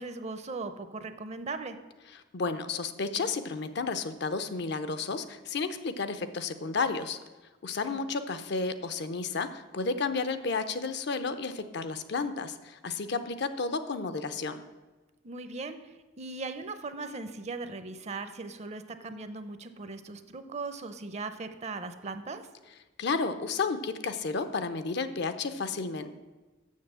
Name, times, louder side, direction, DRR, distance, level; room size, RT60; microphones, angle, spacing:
voice 1, 0.0-1.8 7.9-8.0 15.2-22.5, right 3 dB, 35° right, 10 dB, 0.6 m, -39 dB
voice 2, 2.3-7.2 7.6-14.6 23.0-26.1, left 4 dB, 60° left, 10 dB, 0.6 m, -32 dB
7.3 x 6.8 x 7.5 m, 1.2 s
head